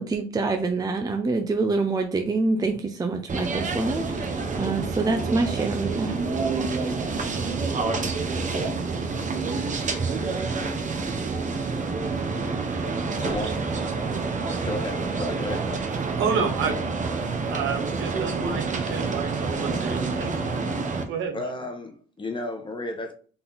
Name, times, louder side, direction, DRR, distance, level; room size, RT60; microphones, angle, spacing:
voice 1, 0.0-6.2, right 3 dB, 20° right, 0.5 m, -26 dB
sound 1, 3.3-21.0, right 4 dB, 40° right, 0.9 m, -28 dB
voice 2, 13.2-13.7 14.6-15.8 21.3-23.1, left 2 dB, 25° left, 1.1 m, -33 dB
voice 3, 16.2-16.8 17.5-20.3 21.1-21.5, right 6 dB, 85° right, 1.0 m, -30 dB
3.9 x 2.8 x 3.9 m
cardioid pair, 90°, 20 cm